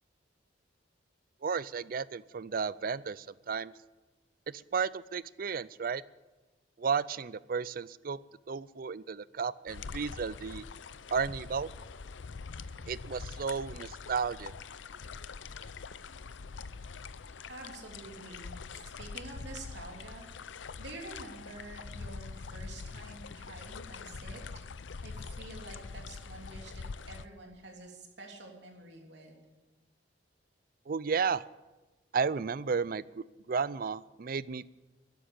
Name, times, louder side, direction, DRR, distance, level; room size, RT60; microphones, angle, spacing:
voice 1, 1.4-3.7 4.5-6.0 6.8-8.2 8.5-10.6 11.1-11.7 12.9-14.5 30.9-31.4 32.1-34.7, right 5 dB, 50° right, 19 dB, 0.4 m, -33 dB
sound 1, 9.7-27.3, left 4 dB, 80° left, 0.6 m, -44 dB
voice 2, 17.5-20.3 20.8-24.4 25.0-29.4, right 2 dB, 65° right, 1 dB, 3.2 m, -48 dB
12.5 x 11.5 x 8.8 m, 1.2 s
head